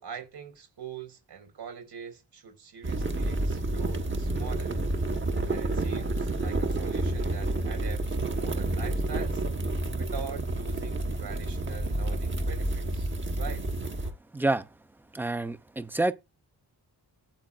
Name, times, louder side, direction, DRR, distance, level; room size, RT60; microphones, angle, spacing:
voice 1, 0.0-4.8 5.5-9.4 10.0-13.1 13.4-13.6, right 7 dB, 75° right, 4.7 m, -43 dB
sound 1, 2.8-14.1, right 2 dB, 30° right, 1.2 m, -29 dB
voice 2, 14.3-14.7 15.1-16.1, right 2 dB, 5° right, 0.5 m, -28 dB
13.0 x 8.5 x 2.4 m
wide cardioid pair, 180°, 40 cm